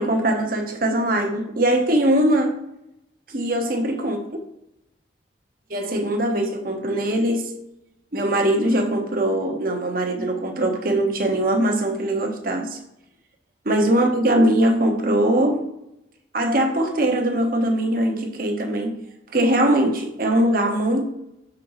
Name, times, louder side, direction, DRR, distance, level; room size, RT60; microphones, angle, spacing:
voice 1, 0.0-2.5 3.3-4.2 5.7-7.5 8.1-12.8 13.6-15.6 16.3-19.0 19.3-21.0, right 1 dB, 50° right, 2 dB, 1.0 m, -21 dB
6.6 x 4.6 x 3.9 m, 0.84 s
head